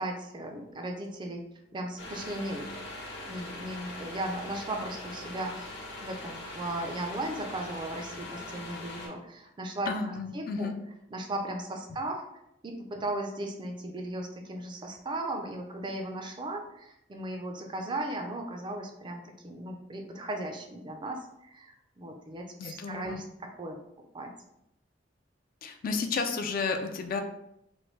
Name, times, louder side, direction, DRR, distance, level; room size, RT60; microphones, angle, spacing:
voice 1, 0.0-1.4 1.7-2.8 3.1-5.7 6.0-9.9 10.3-10.7 11.1-12.3 12.6-23.8 24.1-24.3, right 1 dB, 25° right, 3 dB, 0.4 m, -36 dB
sound 1, 2.0-9.1, left 2 dB, 75° left, 1.0 m, -42 dB
voice 2, 9.9-10.7 22.6-23.2 25.6-27.2, left 4 dB, 50° left, 5 dB, 0.3 m, -32 dB
3.1 x 2.2 x 3.0 m, 0.81 s
head